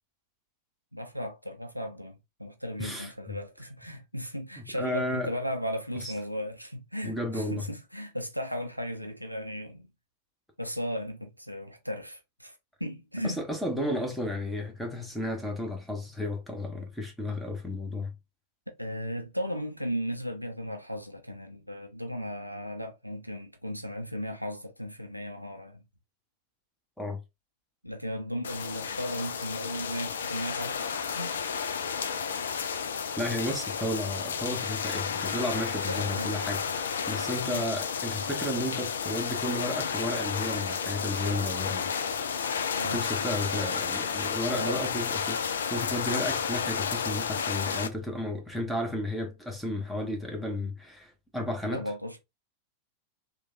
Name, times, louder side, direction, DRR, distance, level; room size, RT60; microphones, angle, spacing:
voice 1, 0.9-9.9 10.6-12.5 12.8-13.4 18.8-25.8 27.8-31.4 35.9-36.3 37.4-37.6 42.7-43.0 44.5-44.8 51.7-52.2, equal, 90° right, 0.5 m, -36 dB
voice 2, 2.8-3.4 4.6-5.3 5.9-6.1 7.0-7.6 13.2-18.1 27.0-27.2 33.2-41.9 42.8-51.9, left 1 dB, ahead, 0.9 m, -33 dB
sound 1, 28.4-47.9, left 6 dB, 65° left, 0.3 m, -32 dB
3.1 x 2.2 x 2.5 m
figure-of-eight pair, 90°, 0 cm